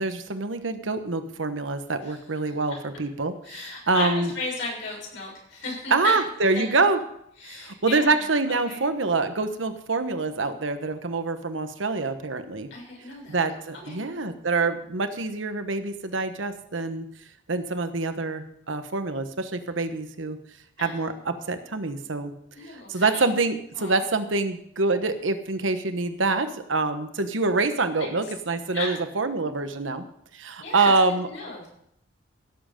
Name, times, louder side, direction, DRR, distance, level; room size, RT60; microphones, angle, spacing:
voice 1, 0.0-4.3 5.9-7.0 7.5-12.7 13.3-17.0 17.5-20.4 20.8-22.3 22.7-30.0 30.3-31.3, right 3 dB, 85° right, 9 dB, 1.2 m, -26 dB
voice 2, 3.4-6.1 6.5-6.6 7.4-8.2 8.6-8.8 12.7-13.4 13.9-14.0 20.8-21.0 22.5-23.3 23.7-24.0 28.0-28.3 28.7-29.0 30.6-30.9 31.3-31.7, left 3 dB, 85° left, -2 dB, 6.7 m, -35 dB
16.5 x 7.7 x 5.2 m, 0.72 s
head